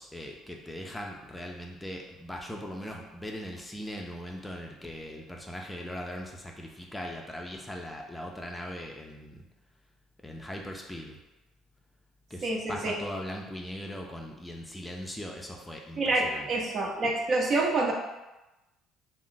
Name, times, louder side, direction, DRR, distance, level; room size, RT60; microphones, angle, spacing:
voice 1, 0.0-9.4 10.2-11.2 12.3-16.5, equal, 10° left, 1 dB, 0.4 m, -40 dB
voice 2, 12.4-12.9 16.0-17.9, right 2 dB, 50° right, -1 dB, 0.6 m, -27 dB
2.4 x 2.0 x 3.8 m, 1.0 s
supercardioid pair, 80°, 0 cm